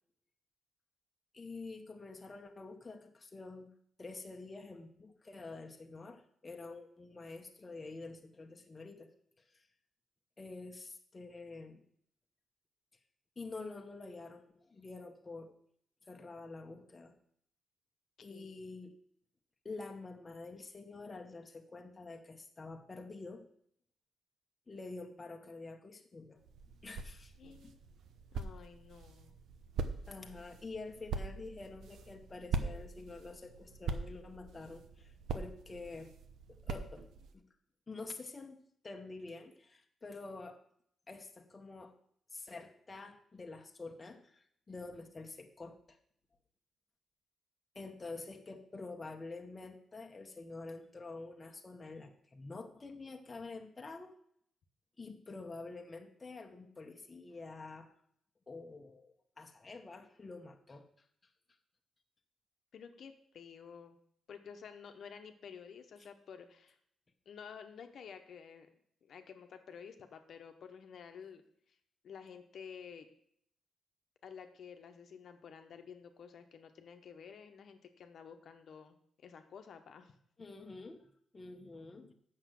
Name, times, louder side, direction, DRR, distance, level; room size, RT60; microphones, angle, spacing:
voice 1, 1.3-3.7 4.0-9.1 10.4-11.8 13.4-15.5 16.1-17.1 18.2-18.9 19.6-23.5 24.7-26.4 26.8-27.3 27.6-27.7 30.1-36.1 36.5-37.1 37.3-37.4 37.9-38.6 38.8-40.6 41.1-41.9 42.3-46.0 47.7-54.1 55.0-57.9 58.5-60.9 80.4-82.1, left 3 dB, 20° left, 3 dB, 1.0 m, -48 dB
voice 2, 18.2-18.6 27.4-27.8 28.3-29.3 62.7-64.0 64.3-66.8 67.3-68.7 69.0-71.4 71.7-71.8 72.0-73.1 74.2-80.1, left 7 dB, 55° left, 7 dB, 1.0 m, -51 dB
sound 1, 26.4-37.3, right 4 dB, 75° right, 0.9 m, -42 dB
8.3 x 6.5 x 7.6 m, 0.66 s
cardioid pair, 150°, 0 cm